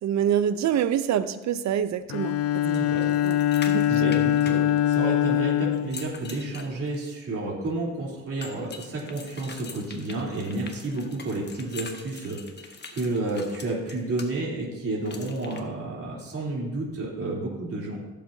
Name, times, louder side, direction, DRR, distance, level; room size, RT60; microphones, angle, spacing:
voice 1, 0.0-2.6 3.0-3.4 3.7-3.8, right 9 dB, 65° right, 13 dB, 0.7 m, -26 dB
Bowed string instrument, 2.1-6.7, left 11 dB, 55° left, 0.4 m, -24 dB
voice 2, 2.6-3.0 3.9-18.0, right 2 dB, 50° right, -4 dB, 3.5 m, -31 dB
sound 1, 2.8-5.3 5.7-7.2 8.4-14.3 15.1-15.6, left 4 dB, 35° left, 1.3 m, -43 dB
16.0 x 7.6 x 2.8 m, 1.2 s
cardioid pair, 90°, 30 cm